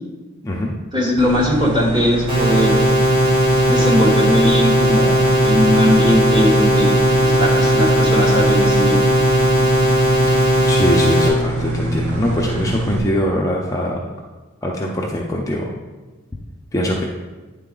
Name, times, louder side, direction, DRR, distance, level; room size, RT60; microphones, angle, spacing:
voice 1, 0.9-3.0 3.6-9.0, left 1 dB, 20° right, -2 dB, 1.2 m, -19 dB
sound 1, 1.2-13.0, right 2 dB, 85° right, 0.8 m, -24 dB
sound 2, 2.3-11.3, equal, 40° right, 1.5 m, -16 dB
voice 2, 10.3-14.0 14.6-15.7 16.7-17.0, left 1 dB, 15° left, -2 dB, 0.5 m, -22 dB
9.6 x 3.9 x 3.8 m, 1.2 s
head